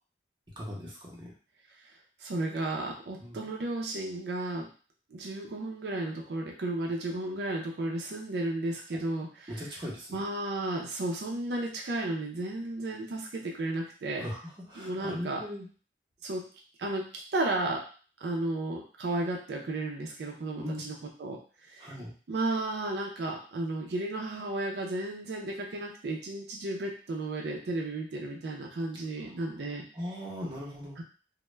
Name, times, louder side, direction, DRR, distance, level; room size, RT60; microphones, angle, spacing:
voice 1, 0.6-1.3 3.2-3.4 8.9-9.0 9.5-10.2 14.2-14.4 14.7-15.7 20.6-20.8 21.8-22.1 29.9-31.0, equal, 25° right, -4 dB, 0.7 m, -39 dB
voice 2, 2.2-4.7 5.1-9.7 10.1-14.2 14.8-15.4 16.2-16.5 16.8-17.9 18.2-21.9 22.3-29.8 31.0-31.1, right 2 dB, 75° right, 0 dB, 0.4 m, -33 dB
2.2 x 2.0 x 3.1 m, 0.38 s
head